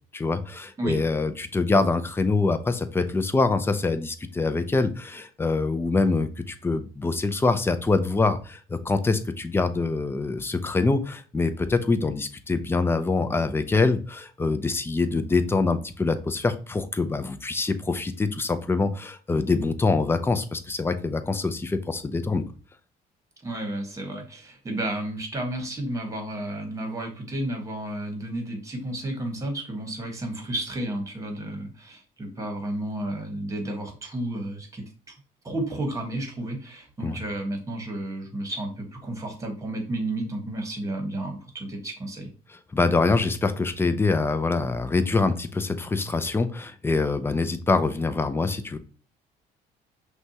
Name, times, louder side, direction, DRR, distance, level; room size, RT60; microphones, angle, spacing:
voice 1, 0.1-22.4 37.0-37.2 42.5-48.8, left 3 dB, 15° left, 9 dB, 0.4 m, -25 dB
voice 2, 23.4-35.1 35.4-42.3, right 1 dB, 20° right, 3 dB, 1.3 m, -32 dB
5.8 x 2.3 x 2.8 m, 0.38 s
cardioid pair, 110°, 17 cm